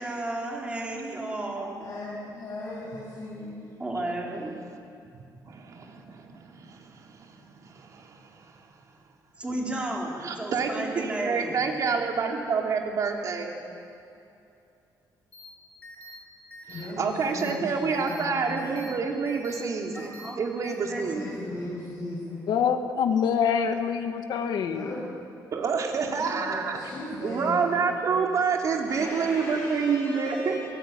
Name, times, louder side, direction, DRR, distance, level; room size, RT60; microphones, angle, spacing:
voice 1, 0.0-1.9 3.8-4.5 9.4-11.6 20.0-20.4 20.6-21.5, right 1 dB, 15° right, -2 dB, 4.3 m, -33 dB
voice 2, 1.8-3.7 9.5-9.6 16.7-19.0 20.8-22.5 24.6-25.1 26.0-27.8 28.9-30.6, left 1 dB, 45° left, -5 dB, 7.0 m, -37 dB
voice 3, 5.1-8.5 10.2-13.5 16.7-21.2 25.5-26.8 27.2-30.5, right 5 dB, 50° right, 1 dB, 3.2 m, -28 dB
sound 1, 15.3-15.5 15.8-16.1 16.5-16.8 17.2-17.5 17.9-18.2 18.6-18.9 19.3-19.6 19.9-20.3 20.6-20.8, equal, 20° left, 4.5 m, -45 dB
voice 4, 22.5-24.9, left 7 dB, 75° left, 6 dB, 1.6 m, -25 dB
28.0 x 17.5 x 9.3 m, 2.6 s
cardioid pair, 160°, 7 cm